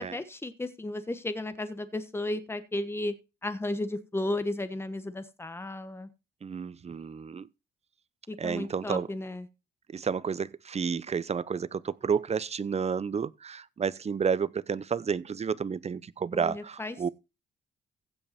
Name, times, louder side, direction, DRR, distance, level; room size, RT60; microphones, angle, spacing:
voice 1, 0.0-3.1 3.4-6.1 8.3-9.5 16.3-17.1, left 1 dB, 10° left, 1.3 m, -34 dB
voice 2, 6.4-7.5 8.4-9.1 9.9-17.1, right 6 dB, 30° right, 0.7 m, -31 dB
15.5 x 5.6 x 4.3 m
cardioid pair, 90°, 20 cm